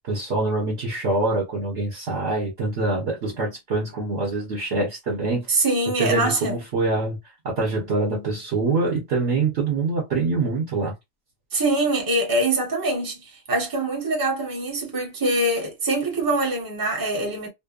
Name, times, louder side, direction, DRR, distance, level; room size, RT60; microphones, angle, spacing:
voice 1, 0.1-5.5 6.0-7.2 7.4-10.9, right 3 dB, 60° right, 1.2 m, -25 dB
voice 2, 5.5-6.6 11.5-17.5, right 2 dB, 20° right, 0.9 m, -24 dB
2.7 x 2.2 x 2.4 m
omnidirectional pair, 1.3 m